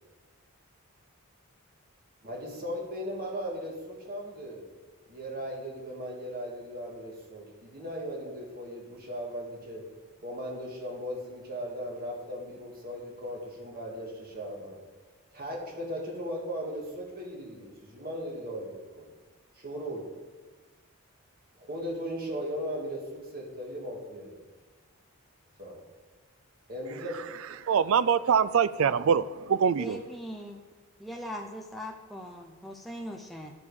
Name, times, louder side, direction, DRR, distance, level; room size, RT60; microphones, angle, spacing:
voice 1, 2.2-4.7 5.1-9.9 10.2-14.8 15.3-19.1 19.5-20.1 21.6-24.3 25.6-25.8 26.7-27.2, equal, 40° right, -2 dB, 1.9 m, -37 dB
voice 2, 27.7-30.0, right 7 dB, 70° right, 16 dB, 0.3 m, -24 dB
voice 3, 29.8-30.6 31.0-33.5, equal, ahead, 1 dB, 0.5 m, -40 dB
11.5 x 5.2 x 4.9 m, 1.3 s
head